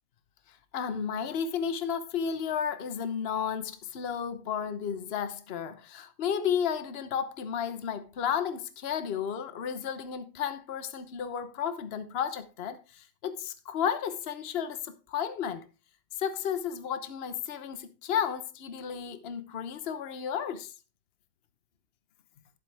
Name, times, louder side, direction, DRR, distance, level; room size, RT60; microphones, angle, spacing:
voice 1, 0.5-15.7 16.1-20.7, left 8 dB, 45° left, 1.0 m, -33 dB
11.5 x 7.5 x 3.4 m
omnidirectional pair, 1.8 m